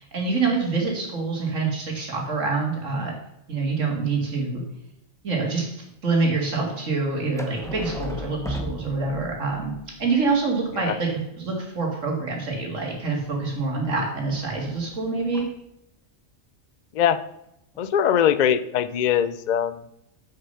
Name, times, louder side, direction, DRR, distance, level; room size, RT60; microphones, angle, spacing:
voice 1, 0.0-3.1 3.5-4.6 5.2-9.7 10.0-15.5, right 4 dB, 70° right, 0 dB, 2.6 m, -26 dB
sound 1, 7.4-9.5 12.4-15.6 17.4-17.5 17.7-17.9, right 1 dB, 5° left, 0.8 m, -38 dB
sound 2, 7.6-11.0, left 6 dB, 35° left, 0.9 m, -42 dB
voice 2, 17.8-19.8, left 9 dB, 65° left, 13 dB, 0.4 m, -21 dB
7.9 x 6.7 x 5.5 m, 0.82 s
omnidirectional pair, 1.4 m